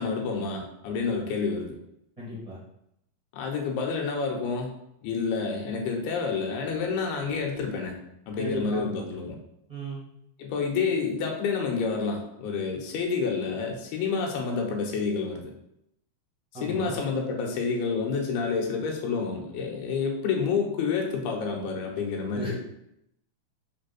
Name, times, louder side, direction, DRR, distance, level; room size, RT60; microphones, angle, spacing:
voice 1, 0.0-1.8 3.3-4.7 5.0-8.0 8.3-9.4 10.4-15.4 16.5-22.6, left 5 dB, 85° left, 1 dB, 3.2 m, -29 dB
voice 2, 2.2-2.6 8.4-9.0 9.7-10.0 16.5-17.0 22.3-22.6, right 1 dB, 30° right, -7 dB, 0.6 m, -35 dB
6.3 x 3.5 x 6.0 m, 0.78 s
omnidirectional pair, 4.4 m